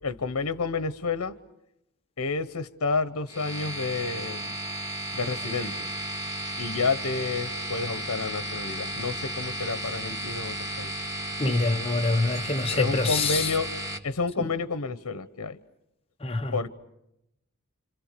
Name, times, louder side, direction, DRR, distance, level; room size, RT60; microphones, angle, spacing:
voice 1, 0.0-1.4 2.2-4.5 5.1-5.9 6.6-10.9 12.7-13.7 14.0-15.6 16.5-16.7, left 4 dB, 75° left, 1.0 m, -30 dB
sound 1, 3.3-14.0, right 1 dB, 15° right, 2.3 m, -34 dB
voice 2, 11.4-13.5 14.4-14.5 16.2-16.6, left 3 dB, 25° left, 1.0 m, -26 dB
30.0 x 26.5 x 6.8 m
head